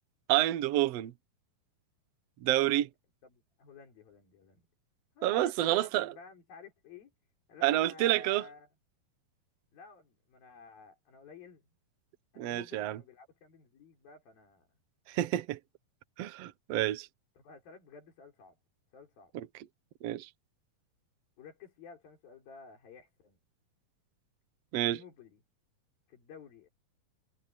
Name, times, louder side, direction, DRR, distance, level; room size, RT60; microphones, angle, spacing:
voice 1, 0.3-1.1 2.4-2.9 5.2-6.1 7.6-8.5 12.4-13.0 15.1-15.6 16.2-17.1 19.3-19.5 20.0-20.3 24.7-25.0, right 14 dB, 65° right, 1.6 m, -28 dB
voice 2, 3.2-4.6 5.2-7.1 7.5-8.7 9.7-11.6 12.3-14.7 15.1-15.2 17.4-18.5 18.9-19.3 21.4-23.4 24.9-25.4 26.1-26.7, left 5 dB, 75° left, 6.2 m, -53 dB
omnidirectional pair, 4.2 m